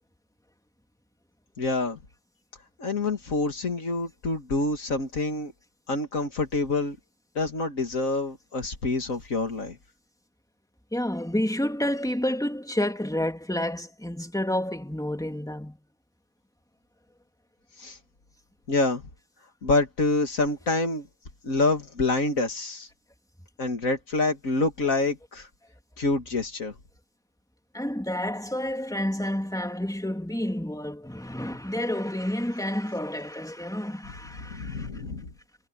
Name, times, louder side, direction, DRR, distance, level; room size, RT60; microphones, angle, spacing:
voice 1, 1.6-2.0 2.8-5.5 5.9-7.0 7.4-9.8 17.8-18.0 18.7-19.0 19.6-21.1 21.4-22.9 23.6-25.5 26.0-26.7 34.4-35.3, left 2 dB, 75° left, 2.7 m, -27 dB
voice 2, 10.9-15.8 27.7-34.9, left 1 dB, ahead, 3.3 m, -29 dB
omnidirectional pair, 1.4 m